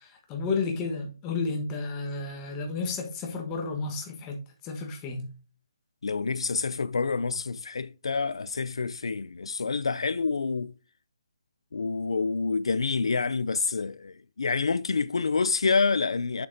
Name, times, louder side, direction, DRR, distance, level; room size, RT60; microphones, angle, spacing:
voice 1, 0.0-5.3, left 4 dB, 15° left, 1.2 m, -32 dB
voice 2, 6.0-10.7 11.7-16.5, left 4 dB, 80° left, 0.4 m, -27 dB
7.7 x 6.7 x 2.6 m
hypercardioid pair, 170°, 3 cm